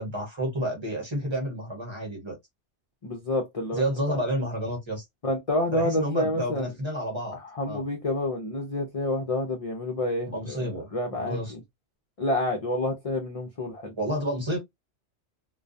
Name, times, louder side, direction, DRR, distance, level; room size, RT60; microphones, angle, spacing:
voice 1, 0.0-2.4 3.7-5.0 5.7-7.4 7.7-7.8 10.3-11.5 14.0-14.6, equal, 25° right, 1.0 m, -30 dB
voice 2, 3.0-4.2 5.2-6.7 7.3-11.6 12.2-13.9, left 1 dB, 40° left, 0.5 m, -29 dB
2.3 x 2.2 x 2.5 m
omnidirectional pair, 1.2 m